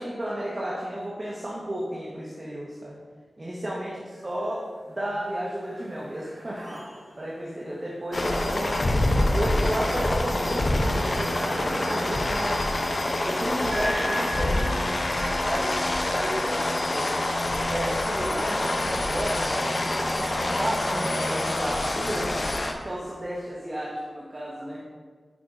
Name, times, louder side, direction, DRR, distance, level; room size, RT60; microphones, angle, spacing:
voice 1, 0.0-3.0 3.4-4.0 4.2-6.6 7.2-8.8 9.3-12.6 13.2-17.2 17.7-22.6 22.8-24.8, equal, 35° right, -5 dB, 1.3 m, -32 dB
sound 1, 4.1-4.8 5.1-18.3 18.9-23.4, equal, 55° right, 1.8 m, -41 dB
sound 2, 8.1-22.7, left 1 dB, 45° left, 0.7 m, -26 dB
8.8 x 5.6 x 2.6 m, 1.5 s
cardioid pair, 55°, 0 cm